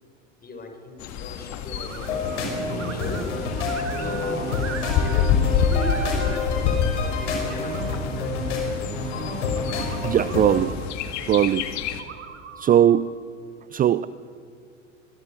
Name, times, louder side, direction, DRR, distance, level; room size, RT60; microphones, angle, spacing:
voice 1, 0.4-9.1, left 2 dB, 25° left, 7 dB, 5.1 m, -38 dB
Bird, 1.0-12.0, left 7 dB, 50° left, 2.2 m, -28 dB
sound 1, 1.7-2.4 2.7-5.3 5.6-6.5 7.0-8.0 8.9-10.8 11.9-13.0, right 8 dB, 75° right, 2.2 m, -40 dB
sound 2, 2.0-10.6, left 3 dB, 70° left, 5.6 m, -28 dB
voice 2, 9.9-10.7 11.3-11.7 12.6-13.1 13.7-14.1, right 10 dB, 25° right, 16 dB, 0.5 m, -19 dB
23.5 x 22.0 x 8.6 m, 2.2 s
figure-of-eight pair, 75°, 37 cm